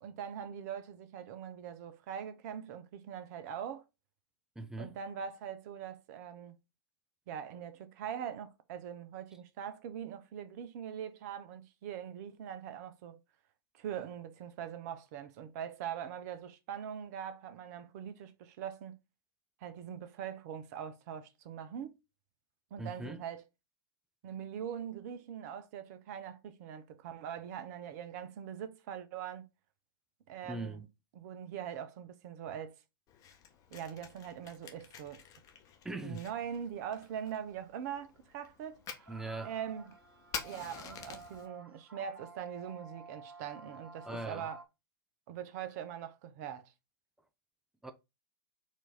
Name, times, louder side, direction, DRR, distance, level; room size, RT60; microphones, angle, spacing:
voice 1, 0.0-3.8 4.8-6.6 7.3-13.2 13.7-19.0 19.6-22.0 22.7-23.4 24.2-29.5 30.3-30.8 31.1-32.8 33.7-35.2 36.0-39.1 39.4-39.9 40.4-44.6 45.3-46.7, right 8 dB, 45° right, 0.7 m, -42 dB
voice 2, 4.6-4.9 22.8-23.2 30.5-30.9 35.8-36.2 39.1-39.5 44.0-44.5 47.8-47.9, right 2 dB, 5° right, 0.5 m, -40 dB
Fire, 33.1-41.5, left 7 dB, 30° left, 0.9 m, -49 dB
sound 1, 37.2-37.4 38.2-38.3 39.0-44.6, right 3 dB, 85° right, 0.8 m, -52 dB
4.5 x 2.7 x 4.1 m
figure-of-eight pair, 105°, 12 cm